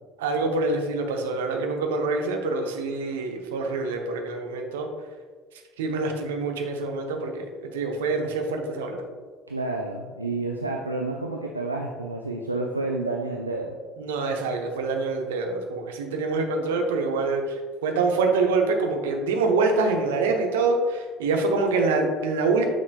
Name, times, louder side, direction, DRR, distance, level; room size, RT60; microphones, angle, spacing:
voice 1, 0.2-4.9 5.8-7.5 7.7-9.0 14.0-22.7, right 3 dB, 70° right, 3 dB, 0.8 m, -25 dB
voice 2, 9.5-13.8, right 2 dB, 85° right, 0 dB, 0.4 m, -29 dB
9.0 x 6.3 x 2.3 m, 1.5 s
figure-of-eight pair, 60°, 0 cm